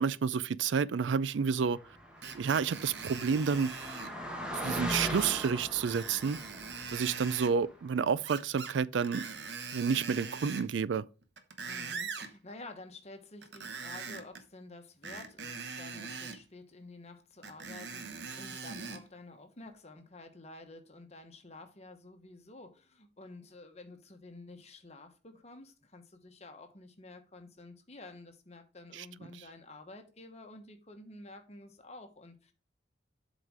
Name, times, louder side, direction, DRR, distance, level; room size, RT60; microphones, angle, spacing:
voice 1, 0.0-1.8 2.3-3.7 4.5-6.4 6.9-9.3 9.7-11.1 28.9-29.1, right 6 dB, 80° right, 0.4 m, -30 dB
Car passing by, 1.7-7.7, equal, 5° right, 1.3 m, -40 dB
Screech, 2.2-4.1 5.1-5.5 5.8-7.5 8.2-8.8 9.0-10.7 11.2-12.3 13.4-14.4 15.0-16.4 17.4-19.0 19.6-19.7, right 5 dB, 65° right, 1.0 m, -42 dB
voice 2, 11.6-32.5, left 2 dB, 35° left, 1.2 m, -51 dB
7.9 x 4.1 x 4.8 m
head